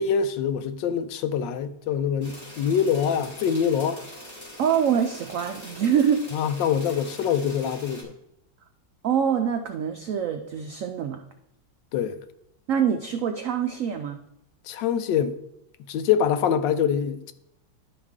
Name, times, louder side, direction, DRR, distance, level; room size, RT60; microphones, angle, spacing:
voice 1, 0.0-4.0 6.3-8.1 11.9-12.2 14.7-15.4 15.9-17.3, left 7 dB, 80° left, 1.2 m, -24 dB
sound 1, 2.2-8.0, equal, 15° left, 1.6 m, -43 dB
voice 2, 4.6-6.3 9.0-11.2 12.7-14.2, right 8 dB, 85° right, 0.7 m, -25 dB
11.0 x 5.0 x 3.6 m
omnidirectional pair, 2.0 m